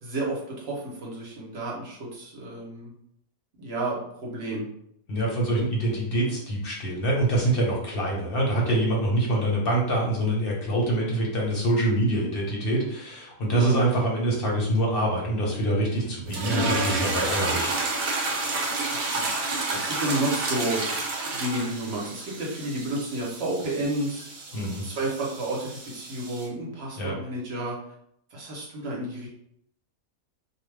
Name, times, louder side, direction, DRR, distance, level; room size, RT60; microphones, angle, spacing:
voice 1, 0.0-2.9 3.5-4.7 13.5-13.8 18.9-20.8 21.3-24.2 24.8-27.7 28.3-29.3, right 1 dB, 50° right, -3 dB, 1.0 m, -31 dB
voice 2, 5.1-17.7 24.5-24.8 27.0-27.1, right 1 dB, 50° left, -3 dB, 0.9 m, -25 dB
sound 1, 16.3-26.5, right 3 dB, 80° right, 1.1 m, -30 dB
2.5 x 2.3 x 3.2 m, 0.71 s
omnidirectional pair, 1.5 m